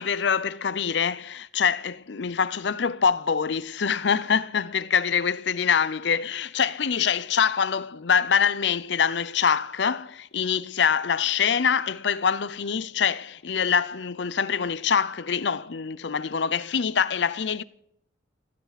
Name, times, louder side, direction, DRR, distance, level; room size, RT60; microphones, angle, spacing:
voice 1, 0.0-17.6, left 7 dB, 70° left, 0.6 m, -24 dB
30.0 x 10.5 x 4.1 m
head